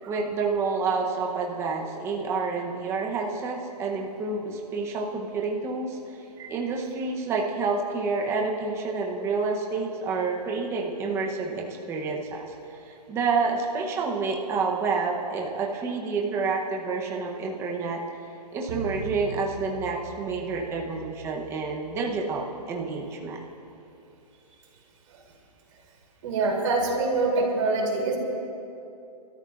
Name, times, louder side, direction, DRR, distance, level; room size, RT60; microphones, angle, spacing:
voice 1, 0.1-6.0 6.5-12.5 12.9-18.0 18.5-23.4, right 4 dB, 15° right, 0 dB, 0.8 m, -28 dB
sound 1, 18.7-23.1, right 1 dB, 65° right, 3.9 m, -42 dB
voice 2, 26.2-28.2, right 3 dB, 50° right, -1 dB, 3.0 m, -25 dB
26.5 x 13.0 x 2.5 m, 2.7 s
hypercardioid pair, 165°, 21 cm